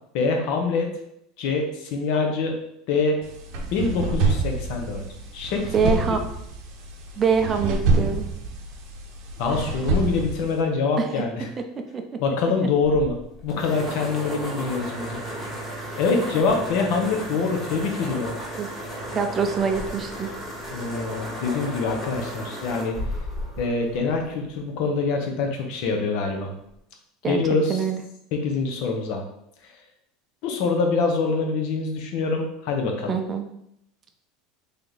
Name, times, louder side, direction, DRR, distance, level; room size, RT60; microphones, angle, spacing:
voice 1, 0.1-0.9 1.4-2.6 2.9-3.2 3.7-5.0 5.3-6.2 9.4-11.5 12.2-13.2 13.4-15.2 16.0-18.4 20.7-23.0 23.6-26.5 27.3-27.8 28.3-29.2 30.4-33.1, left 4 dB, 60° left, 3 dB, 0.8 m, -25 dB
sound 1, 3.2-10.6, right 3 dB, 60° right, 0.7 m, -27 dB
voice 2, 5.7-6.2 7.2-8.3 11.0-11.1 11.9-12.0 18.6-18.7 19.1-20.3 27.2-27.4 27.7-28.0 33.1-33.4, right 6 dB, 25° right, 6 dB, 0.5 m, -24 dB
sound 2, 12.8-24.6, equal, 10° left, 1.5 m, -34 dB
3.4 x 2.8 x 3.9 m, 0.78 s
supercardioid pair, 135°, 0 cm